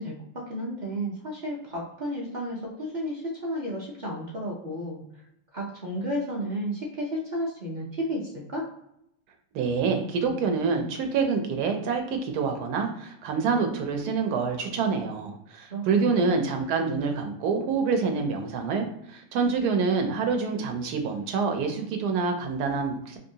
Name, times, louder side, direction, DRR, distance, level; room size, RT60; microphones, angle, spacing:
voice 1, 0.0-5.0 5.5-8.6 15.7-16.5, equal, 55° right, -3 dB, 0.5 m, -32 dB
voice 2, 9.5-23.2, right 5 dB, 85° right, 4 dB, 1.1 m, -26 dB
3.3 x 2.6 x 2.7 m, 0.78 s
omnidirectional pair, 1.7 m